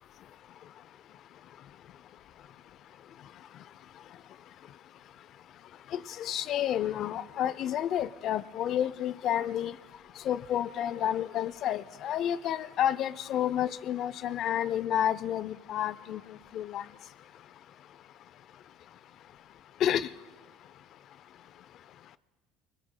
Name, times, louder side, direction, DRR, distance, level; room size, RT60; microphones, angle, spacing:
voice 1, 5.9-9.7 10.3-16.2 16.5-16.8 19.8-20.1, left 10 dB, 55° left, 17 dB, 0.5 m, -30 dB
25.0 x 20.5 x 2.2 m, 1.3 s
supercardioid pair, 100°, 0 cm